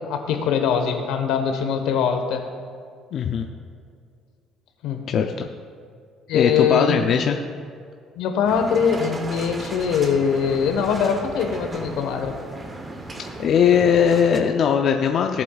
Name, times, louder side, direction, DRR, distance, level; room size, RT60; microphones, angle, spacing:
voice 1, 0.0-2.4 4.8-5.0 6.3-7.0 8.2-12.3, left 7 dB, 85° left, 5 dB, 1.2 m, -22 dB
voice 2, 3.1-3.5 5.1-5.3 6.3-7.4 13.4-15.4, left 7 dB, 50° left, 3 dB, 0.5 m, -19 dB
sound 1, 8.4-14.4, right 2 dB, 25° right, 1.0 m, -36 dB
17.0 x 8.2 x 2.4 m, 2.2 s
cardioid pair, 125°, 0 cm